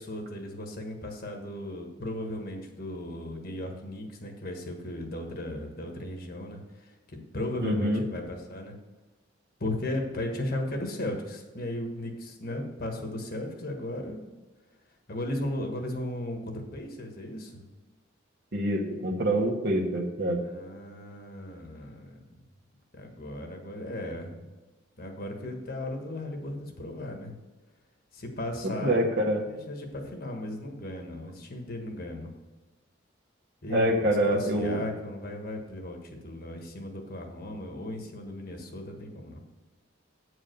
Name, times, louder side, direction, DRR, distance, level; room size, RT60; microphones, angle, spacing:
voice 1, 0.0-8.8 9.6-14.2 15.1-17.6 20.4-22.2 22.9-24.5 25.0-27.4 28.1-29.0 29.5-32.3 33.6-39.4, left 1 dB, 50° left, 3 dB, 1.5 m, -36 dB
voice 2, 7.6-8.0 18.5-20.4 28.6-29.4 33.7-34.8, right 1 dB, 60° right, 0 dB, 1.5 m, -26 dB
8.6 x 4.9 x 6.6 m, 1.2 s
head